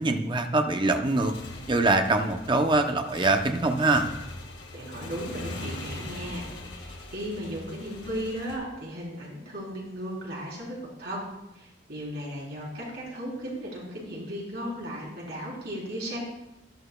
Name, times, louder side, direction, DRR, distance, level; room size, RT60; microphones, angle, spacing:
voice 1, 0.0-1.3 1.7-4.1, right 2 dB, 25° right, 6 dB, 0.7 m, -23 dB
Motorcycle / Engine, 1.0-8.6, left 2 dB, 70° left, 1.8 m, -41 dB
voice 2, 4.7-6.5 6.8-11.2 11.5-16.2, equal, 60° right, -4 dB, 3.9 m, -36 dB
13.5 x 11.0 x 2.3 m, 0.95 s
head